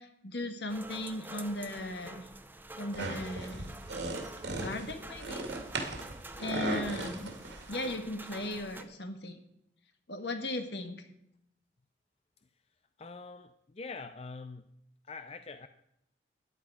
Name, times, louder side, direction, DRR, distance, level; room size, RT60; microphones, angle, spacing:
voice 1, 0.0-2.3 2.8-3.7 4.6-5.5 6.4-7.3 7.7-9.4 10.1-11.1, left 1 dB, 70° left, 7 dB, 1.8 m, -37 dB
sound 1, 0.7-8.8, right 2 dB, 10° right, 0.7 m, -47 dB
sound 2, 2.9-7.9, right 2 dB, 80° right, 2.3 m, -38 dB
voice 2, 13.0-14.7 15.1-15.7, left 4 dB, 35° left, 10 dB, 0.5 m, -44 dB
14.0 x 10.5 x 4.9 m, 0.80 s
head